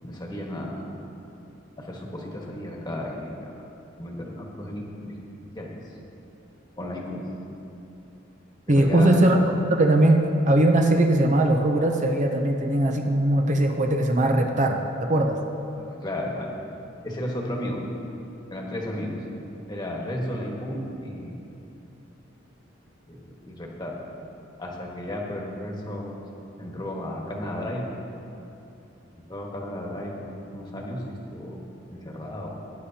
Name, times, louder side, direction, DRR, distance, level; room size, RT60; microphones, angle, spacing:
voice 1, 0.0-0.8 1.8-3.5 4.0-5.9 6.8-7.3 8.7-9.2 15.8-16.5 17.0-17.8 18.5-19.2 19.7-21.4 23.1-24.0 24.6-26.1 26.6-28.0 29.2-31.6 31.9-32.5, left 1 dB, 20° left, -1 dB, 1.4 m, -34 dB
voice 2, 8.7-9.4 9.7-15.4, right 1 dB, 40° right, 3 dB, 0.6 m, -20 dB
18.0 x 9.9 x 2.8 m, 2.9 s
head